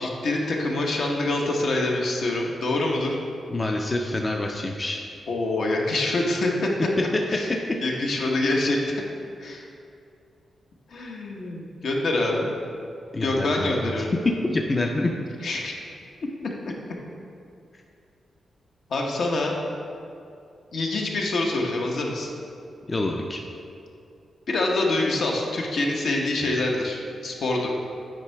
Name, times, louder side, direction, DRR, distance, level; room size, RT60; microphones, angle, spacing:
voice 1, 0.0-3.2 5.3-6.7 7.3-7.5 7.8-9.0 9.4-9.7 10.9-12.5 13.2-14.1 15.4-15.8 18.9-19.6 20.7-22.3 24.5-27.7, left 2 dB, 70° left, -1 dB, 1.0 m, -25 dB
voice 2, 3.5-5.0 13.1-13.9 14.4-15.1 22.9-23.4, left 2 dB, 25° left, 1 dB, 0.4 m, -27 dB
8.9 x 4.7 x 3.3 m, 2.5 s
wide cardioid pair, 120°, 0 cm